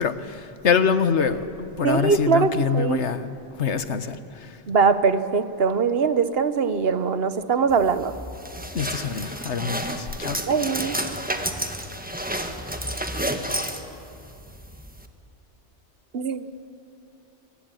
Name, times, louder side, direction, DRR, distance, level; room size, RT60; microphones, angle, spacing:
voice 1, 0.0-3.3 3.6-4.6 8.7-10.4, left 6 dB, 80° left, 11 dB, 1.4 m, -25 dB
voice 2, 1.8-3.0 4.7-8.1 10.5-11.0 16.1-16.4, right 5 dB, 60° right, 12 dB, 1.3 m, -22 dB
sound 1, 7.7-15.1, right 1 dB, 10° right, 1.4 m, -31 dB
23.0 x 20.0 x 9.1 m, 2.6 s
omnidirectional pair, 1.2 m